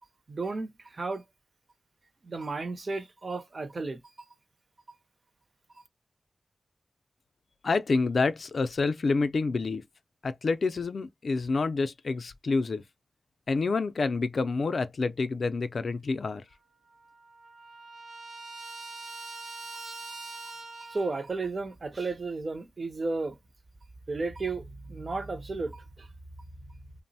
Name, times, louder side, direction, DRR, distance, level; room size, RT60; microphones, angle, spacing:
voice 1, 0.3-1.2 2.2-4.0 20.9-23.4 24.1-26.1, right 3 dB, 45° right, 0.5 m, -33 dB
voice 2, 7.6-9.8 10.2-12.8 13.5-16.4, left 4 dB, 60° left, 0.3 m, -28 dB
Trumpet, 16.5-16.6 16.8-21.3, right 3 dB, 70° right, 0.9 m, -43 dB
3.0 x 2.0 x 2.6 m
wide cardioid pair, 130°, 0 cm